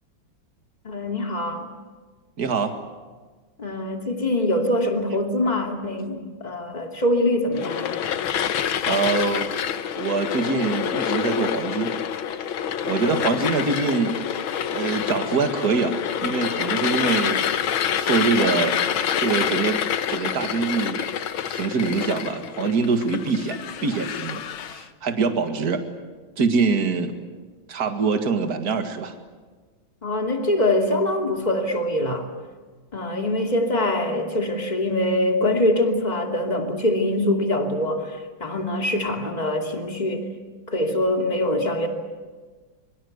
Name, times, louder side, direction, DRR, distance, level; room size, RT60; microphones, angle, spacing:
voice 1, 0.8-1.7 3.6-8.1 30.0-32.3 32.9-40.3 40.7-41.9, left 1 dB, 20° left, 3 dB, 2.8 m, -24 dB
voice 2, 2.4-2.7 8.9-9.6 10.0-11.9 12.8-14.2 14.7-17.4 17.7-18.9 19.2-19.8 20.1-21.0 21.5-23.6 23.8-24.4 24.7-25.8 26.4-27.1 27.7-29.1, right 4 dB, 50° right, 7 dB, 2.4 m, -24 dB
sound 1, 7.5-24.8, left 9 dB, 85° left, 1.9 m, -27 dB
25.0 x 24.0 x 8.1 m, 1.4 s
omnidirectional pair, 2.1 m